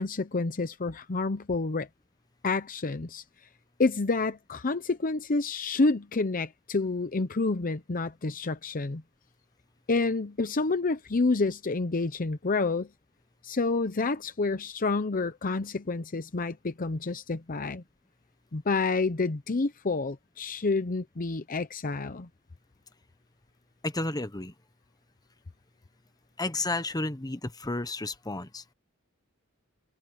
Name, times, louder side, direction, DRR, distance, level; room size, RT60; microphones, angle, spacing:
voice 1, 0.0-1.9 2.4-3.2 3.8-9.0 9.9-12.9 13.4-17.8 18.5-22.3, left 3 dB, 40° left, 0.7 m, -28 dB
voice 2, 23.8-24.5 26.4-28.6, left 2 dB, 20° left, 1.2 m, -32 dB
head